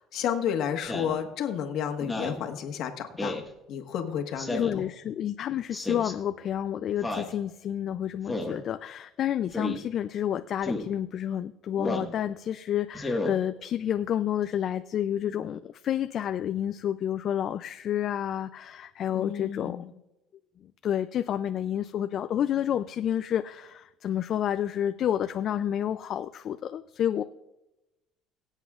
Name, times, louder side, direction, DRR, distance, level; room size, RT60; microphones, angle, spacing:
voice 1, 0.0-3.3 3.7-4.7 19.1-19.9, left 8 dB, 65° left, 4 dB, 1.4 m, -31 dB
Speech synthesizer, 0.9-1.2 2.0-2.4 3.2-3.5 4.4-4.8 5.7-6.1 7.0-7.3 8.3-8.6 9.5-9.8 10.6-10.9 11.8-12.1 12.9-13.3, left 2 dB, 5° left, 1.6 m, -32 dB
voice 2, 4.6-19.8 20.8-27.2, left 10 dB, 50° left, 10 dB, 0.4 m, -29 dB
23.0 x 8.2 x 2.4 m, 0.94 s
cardioid pair, 120°, 0 cm